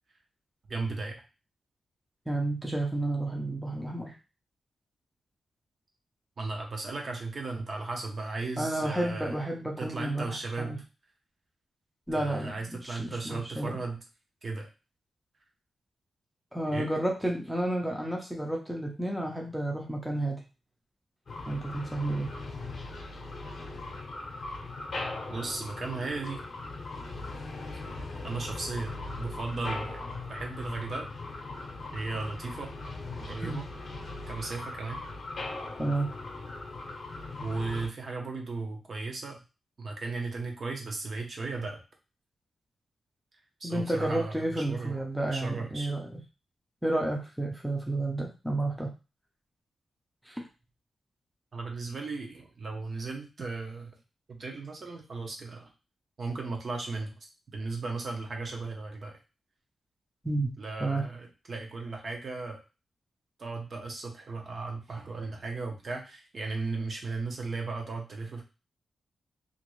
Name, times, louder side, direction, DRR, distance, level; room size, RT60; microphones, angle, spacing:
voice 1, 0.7-1.2 6.4-9.4 9.8-10.8 12.1-14.0 14.4-14.7 16.7-16.9 25.3-26.4 28.2-31.1 31.9-32.7 33.1-33.6 34.3-35.0 37.4-39.4 39.8-41.8 43.6-45.0 45.3-45.9 51.5-53.9 54.3-55.7 56.2-59.2 60.6-62.6 63.4-68.4, right 3 dB, 40° right, 2 dB, 0.7 m, -36 dB
voice 2, 2.3-4.1 8.6-10.8 12.1-13.8 16.5-20.4 21.5-22.3 33.4-33.6 35.8-36.1 43.6-46.1 46.8-48.9 50.3-50.4 60.2-60.5 60.8-61.0, right 1 dB, ahead, -1 dB, 0.5 m, -31 dB
sound 1, 21.3-37.9, left 2 dB, 45° left, 0.7 m, -39 dB
3.0 x 2.5 x 3.1 m, 0.31 s
wide cardioid pair, 175°, 0 cm